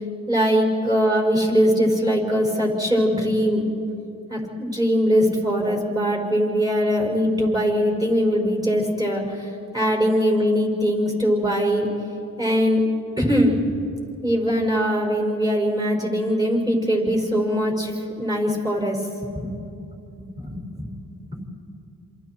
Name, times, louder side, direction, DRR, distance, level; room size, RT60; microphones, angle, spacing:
voice 1, 0.3-3.7 4.3-11.9 12.4-12.8 13.2-13.5 14.2-17.9 18.2-19.0 19.3-19.5 20.4-21.4, equal, 10° right, 1 dB, 5.9 m, -21 dB
27.5 x 26.5 x 4.7 m, 2.7 s
cardioid pair, 80°, 34 cm